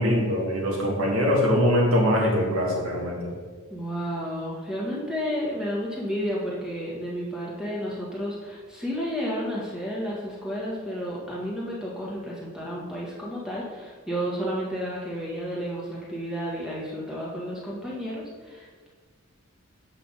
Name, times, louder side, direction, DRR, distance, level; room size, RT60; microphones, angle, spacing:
voice 1, 0.0-3.3, equal, 70° right, -3 dB, 2.0 m, -23 dB
voice 2, 3.7-18.9, equal, 5° right, -6 dB, 1.7 m, -31 dB
8.2 x 5.7 x 4.0 m, 1.5 s
head